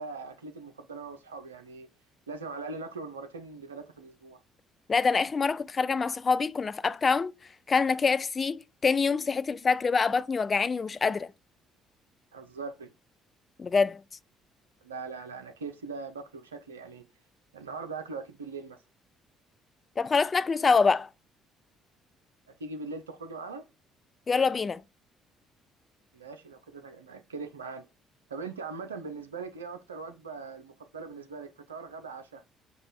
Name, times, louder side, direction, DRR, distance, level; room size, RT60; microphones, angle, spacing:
voice 1, 0.0-1.9 2.3-4.4 12.3-12.9 14.8-17.0 17.5-18.8 22.5-23.6 26.1-27.9 28.3-32.4, right 4 dB, 90° right, 0.5 m, -41 dB
voice 2, 4.9-7.3 7.7-11.3 13.6-14.0 20.0-21.1 24.3-24.8, left 5 dB, 35° left, 0.3 m, -25 dB
4.8 x 2.2 x 4.0 m
hypercardioid pair, 50°, 0 cm